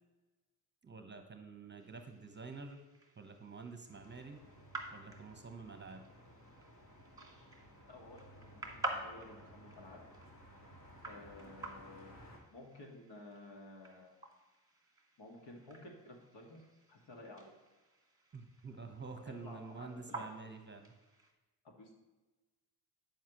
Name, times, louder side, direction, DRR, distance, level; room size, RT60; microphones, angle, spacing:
voice 1, 0.8-2.8 3.2-4.4 4.9-6.0 18.3-20.9, right 4 dB, 25° right, 6 dB, 1.0 m, -48 dB
sound 1, 1.8-21.3, right 2 dB, 10° right, 1.6 m, -50 dB
sound 2, 3.9-12.4, equal, 45° left, 2.1 m, -58 dB
voice 2, 7.9-10.0 11.1-14.1 15.2-17.5 19.3-20.3 21.6-22.0, left 2 dB, 60° left, 1 dB, 2.1 m, -54 dB
9.1 x 7.3 x 3.1 m, 1.2 s
supercardioid pair, 60°, 46 cm